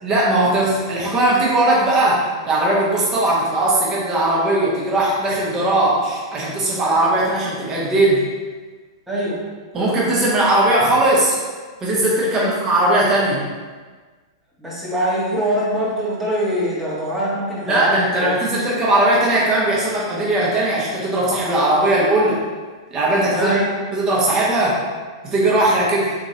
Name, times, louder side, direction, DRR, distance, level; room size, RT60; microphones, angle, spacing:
voice 1, 0.0-8.2 9.7-11.3 11.8-13.4 17.6-22.4 22.9-23.6 23.9-24.8 25.2-26.1, right 1 dB, 25° right, -5 dB, 1.1 m, -18 dB
voice 2, 9.1-9.4 12.3-12.4 14.6-18.3 23.3-23.7, equal, 5° right, -7 dB, 1.2 m, -23 dB
4.0 x 2.9 x 2.8 m, 1.4 s
figure-of-eight pair, 100°, 2 cm